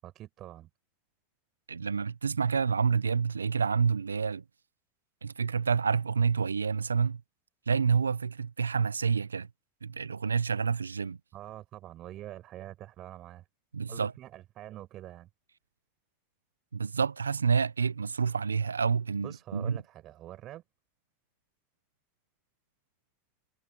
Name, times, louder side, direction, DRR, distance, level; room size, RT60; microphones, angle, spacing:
voice 1, 0.0-0.7 11.3-13.5 13.9-15.3 19.2-20.6, right 14 dB, 45° right, 7.7 m, -45 dB
voice 2, 1.7-4.4 5.2-7.2 7.7-9.5 9.8-11.2 13.7-14.1 16.7-19.8, right 5 dB, 90° right, 0.8 m, -28 dB
hypercardioid pair, 80°, 0 cm